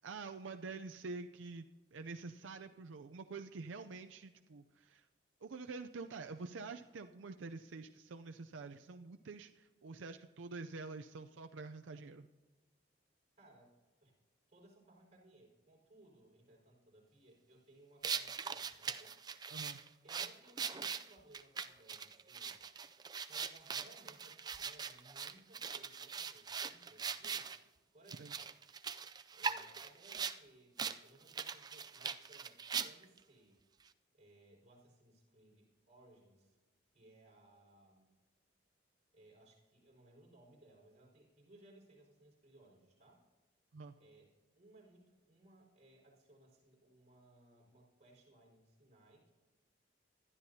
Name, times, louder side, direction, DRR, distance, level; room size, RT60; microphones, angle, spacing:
voice 1, 0.0-5.1 5.4-12.3 19.5-19.8 28.2-28.3 43.7-43.9, right 4 dB, 85° right, 7 dB, 0.5 m, -47 dB
voice 2, 13.4-14.1 14.5-19.2 20.0-22.6 23.3-27.5 27.9-28.3 29.3-33.6 34.1-36.6 36.9-38.1 39.1-43.2 44.0-44.3 44.6-49.3, right 1 dB, 40° right, -3 dB, 5.2 m, -63 dB
sound 1, 18.0-27.6 28.1-30.4 30.8-31.0 31.3-33.2, right 6 dB, 20° right, 0.3 m, -41 dB
20.5 x 12.0 x 2.8 m, 1.3 s
head